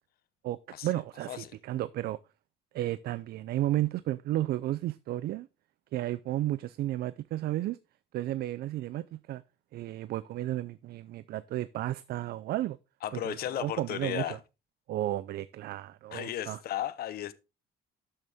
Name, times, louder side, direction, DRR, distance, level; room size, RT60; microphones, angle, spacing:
voice 1, 0.4-2.2 2.7-5.5 5.9-7.8 8.1-9.4 9.7-12.8 13.1-14.4 14.9-16.6, right 14 dB, 55° right, 0.4 m, -33 dB
voice 2, 13.0-14.4 16.1-17.3, left 12 dB, 55° left, 0.8 m, -35 dB
12.0 x 6.5 x 3.5 m
cardioid pair, 155°, 19 cm